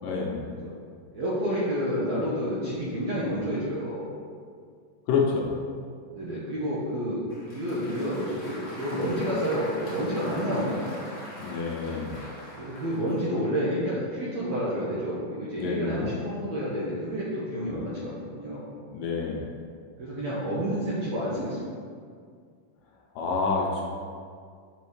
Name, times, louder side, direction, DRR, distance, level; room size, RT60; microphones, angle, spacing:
voice 1, 0.0-0.5 5.1-5.5 11.4-12.2 15.6-16.1 17.6-17.8 18.9-19.5 23.2-23.8, left 5 dB, 75° left, -2 dB, 2.2 m, -28 dB
voice 2, 1.1-4.1 6.1-7.2 7.5-10.9 12.6-18.7 20.0-21.7, equal, 70° right, -8 dB, 1.7 m, -29 dB
Applause, 7.3-13.3, equal, 55° left, 1.4 m, -43 dB
6.0 x 5.6 x 3.2 m, 2.1 s
omnidirectional pair, 4.0 m